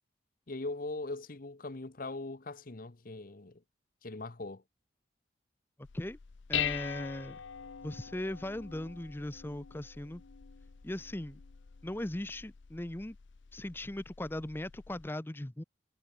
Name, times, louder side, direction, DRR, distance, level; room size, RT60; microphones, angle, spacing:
voice 1, 0.5-3.6 4.0-4.6, left 2 dB, 45° left, 0.9 m, -40 dB
Dishes pots and pans, 5.8-15.1, left 9 dB, 70° left, 0.6 m, -42 dB
voice 2, 6.5-7.4 7.8-10.2 10.8-11.4 11.8-13.2 13.5-15.6, left 1 dB, 10° left, 0.6 m, -38 dB
head